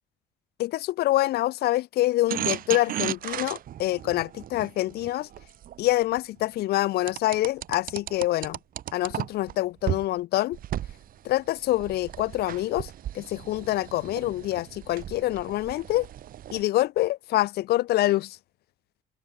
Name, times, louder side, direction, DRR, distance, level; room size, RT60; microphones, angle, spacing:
voice 1, 0.6-5.3 5.8-8.6 8.9-10.6 11.2-12.9 13.1-16.1 16.5-18.4, left 16 dB, 70° left, 0.8 m, -26 dB
sound 1, 2.3-6.2 7.1-9.5 9.9-10.0 10.5-16.6, right 12 dB, 60° right, 1.3 m, -35 dB
open air
cardioid pair, 110°, 17 cm